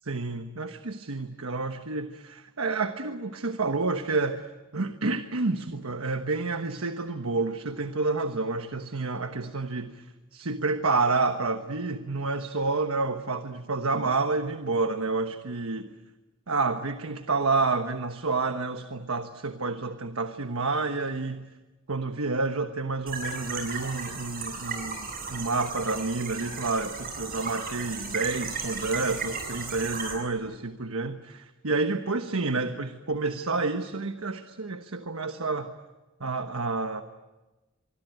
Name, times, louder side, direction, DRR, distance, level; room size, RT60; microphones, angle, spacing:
voice 1, 0.0-4.5 4.7-10.0 10.3-15.9 16.5-21.5 21.9-35.7 36.2-37.0, right 3 dB, 85° right, 8 dB, 1.2 m, -29 dB
sound 1, 23.1-30.1, right 4 dB, 45° right, 7.7 m, -35 dB
25.0 x 24.5 x 9.2 m, 1.1 s
head